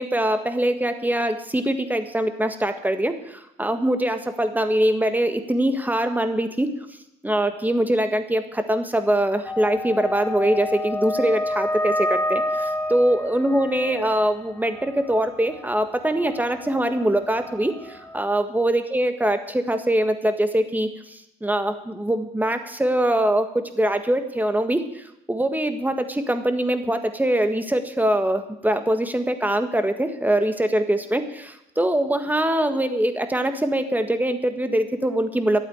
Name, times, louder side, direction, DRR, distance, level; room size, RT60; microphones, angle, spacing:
voice 1, 0.0-6.7 7.2-12.4 12.9-35.6, right 1 dB, 10° right, 7 dB, 1.5 m, -23 dB
sound 1, 9.4-18.2, left 1 dB, 5° left, 1.3 m, -30 dB
12.0 x 8.7 x 9.4 m, 0.83 s
cardioid pair, 90°, 20 cm